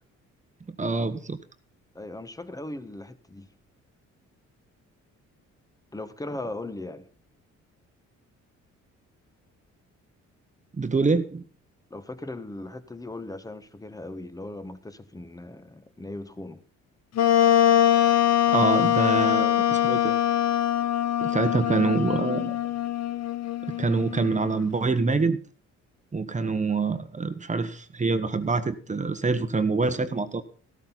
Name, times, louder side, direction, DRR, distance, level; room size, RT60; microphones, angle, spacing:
voice 1, 0.8-1.4 10.8-11.5 18.5-20.1 21.2-22.6 23.8-25.4 26.1-30.4, right 3 dB, 25° right, 1.2 m, -25 dB
voice 2, 1.9-3.5 5.9-7.1 11.9-16.6, left 2 dB, 10° left, 1.3 m, -38 dB
Wind instrument woodwind instrument, 17.1-24.6, left 11 dB, 60° left, 1.0 m, -23 dB
14.0 x 13.0 x 4.1 m
cardioid pair, 90°, 30 cm